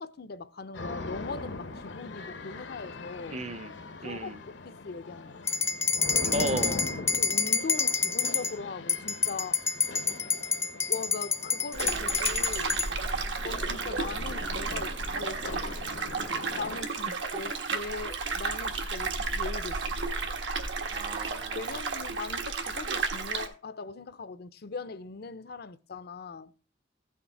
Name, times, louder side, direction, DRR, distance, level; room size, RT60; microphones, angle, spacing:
voice 1, 0.0-3.4 4.0-5.5 6.1-6.5 7.0-9.6 10.9-12.8 13.4-15.8 16.6-20.0 21.5-26.5, left 4 dB, 60° left, 0.5 m, -40 dB
sound 1, 0.7-16.8, left 3 dB, 75° left, 0.9 m, -41 dB
voice 2, 3.3-3.7 4.0-4.4 6.3-6.8 17.3-17.4 20.9-21.8, right 2 dB, 35° right, 0.6 m, -34 dB
sound 2, 5.5-8.5 8.9-12.9, left 5 dB, 15° left, 0.5 m, -28 dB
sound 3, 11.7-23.5, right 4 dB, 85° right, 1.5 m, -32 dB
15.0 x 5.9 x 4.1 m
head